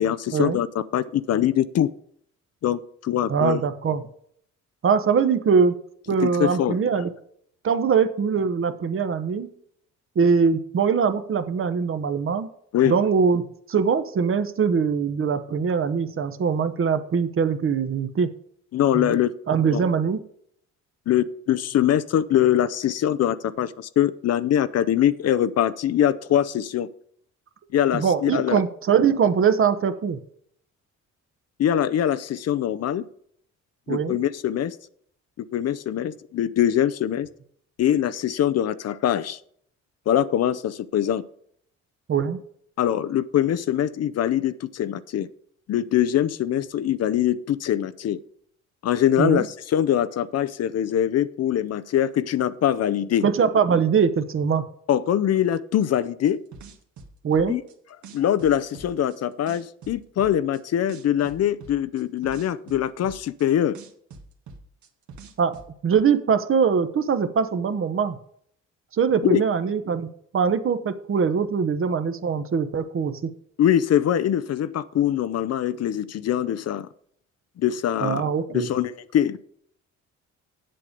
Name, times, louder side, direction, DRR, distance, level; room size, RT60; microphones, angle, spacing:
voice 1, 0.0-1.9 2.6-3.6 6.2-7.0 12.7-13.0 18.7-19.3 19.7-19.8 21.1-26.9 27.7-28.6 31.6-33.0 33.9-34.8 35.5-37.3 37.8-39.4 40.1-41.2 42.8-45.3 45.7-48.2 48.8-53.2 54.9-56.4 57.5-57.6 58.1-63.8 69.3-69.4 73.6-76.9 77.6-78.2 78.5-79.4, left 10 dB, 55° left, 14 dB, 0.6 m, -23 dB
voice 2, 3.3-4.0 4.8-5.7 6.1-7.1 7.6-9.5 10.1-12.5 12.9-18.3 18.9-19.2 19.5-20.2 27.9-30.2 33.9-34.2 42.1-42.4 49.2-49.4 53.2-54.6 57.2-57.6 65.4-68.2 68.9-70.1 70.3-73.3 78.0-78.7, right 6 dB, 45° right, 10 dB, 1.0 m, -22 dB
sound 1, 56.2-57.7 58.0-59.2 59.5-60.6 60.9-63.5 63.7-65.7, right 4 dB, 70° right, 1.5 m, -44 dB
8.3 x 7.7 x 5.1 m, 0.65 s
cardioid pair, 90°, 30 cm